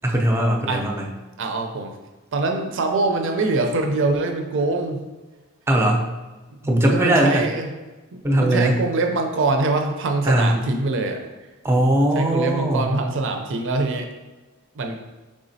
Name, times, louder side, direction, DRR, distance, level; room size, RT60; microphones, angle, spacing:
voice 1, 0.0-1.1 5.7-6.1 6.6-7.4 8.2-8.7 10.2-10.5 11.6-12.9, right 1 dB, 10° right, 1 dB, 0.5 m, -19 dB
voice 2, 1.4-1.9 2.3-5.0 6.9-7.7 8.4-11.3 12.1-14.1 14.8-15.0, right 3 dB, 60° right, 4 dB, 0.5 m, -23 dB
4.9 x 3.6 x 2.7 m, 1.2 s
head